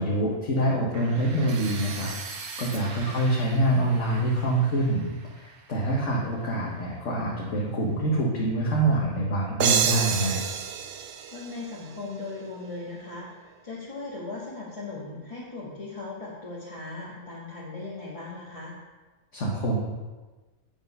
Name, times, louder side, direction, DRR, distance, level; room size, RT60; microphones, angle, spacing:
voice 1, 0.0-2.1 2.6-5.1 5.3-10.4 19.3-19.8, right 1 dB, 55° left, -3 dB, 1.7 m, -25 dB
sound 1, 0.9-6.9, right 4 dB, 80° right, 1.5 m, -42 dB
sound 2, 9.6-12.3, right 7 dB, 60° right, 0.7 m, -27 dB
voice 2, 11.3-18.7, left 3 dB, 25° left, -6 dB, 1.5 m, -38 dB
8.1 x 7.0 x 5.5 m, 1.2 s
omnidirectional pair, 1.5 m